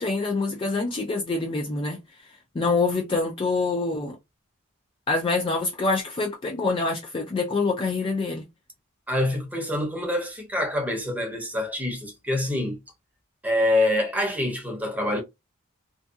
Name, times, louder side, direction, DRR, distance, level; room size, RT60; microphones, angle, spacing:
voice 1, 0.0-2.0 2.5-4.2 5.1-8.5, left 3 dB, 25° left, 0.3 m, -25 dB
voice 2, 9.1-12.8 13.4-15.2, left 1 dB, 5° right, 0.7 m, -26 dB
2.6 x 2.2 x 2.3 m
head